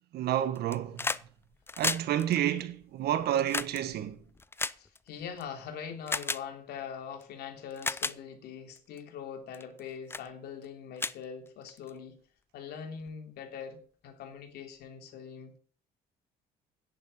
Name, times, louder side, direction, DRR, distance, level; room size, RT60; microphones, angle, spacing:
voice 1, 0.1-1.1 1.8-4.2, right 11 dB, 70° right, 1.8 m, -30 dB
sound 1, 0.5-1.3 1.5-5.4 6.1-6.4 7.2-7.3 7.7-8.2 8.8-9.0 9.5-9.8 10.1-10.3 10.6-10.7 11.0-11.9 13.1-13.2, left 3 dB, 15° left, 0.5 m, -34 dB
voice 2, 4.8-12.2 12.5-15.6, left 7 dB, 70° left, 3.1 m, -42 dB
10.5 x 10.0 x 5.3 m
cardioid pair, 110°, 17 cm